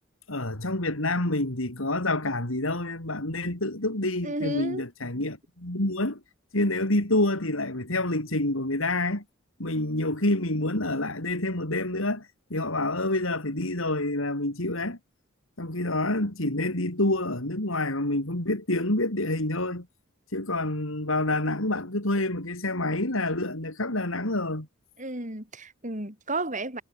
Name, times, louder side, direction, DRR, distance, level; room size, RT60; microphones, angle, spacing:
voice 1, 0.3-6.2 6.5-9.2 9.6-15.0 15.6-19.9 20.3-24.7, left 2 dB, 75° left, 4.3 m, -27 dB
voice 2, 4.2-4.9 25.0-26.8, right 2 dB, 35° right, 7.8 m, -32 dB
head